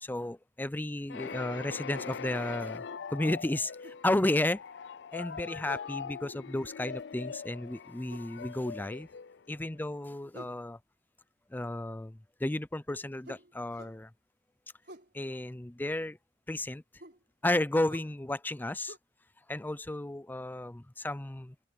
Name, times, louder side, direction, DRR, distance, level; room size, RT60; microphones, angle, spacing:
voice 1, 0.0-2.8 3.1-4.6 5.1-9.1 9.5-10.8 11.5-14.1 15.1-16.2 16.5-16.8 17.4-18.9 19.5-21.7, left 1 dB, 10° left, 0.5 m, -33 dB
sound 1, 1.1-9.8, left 6 dB, 70° left, 0.5 m, -42 dB
sound 2, 1.9-2.2 3.8-4.5 5.6-6.0 8.1-8.3 10.3-10.6 13.2-14.0 14.8-15.1 17.0-17.2 17.9-18.1 18.9-19.0, right 1 dB, 65° right, 4.3 m, -50 dB
open air
head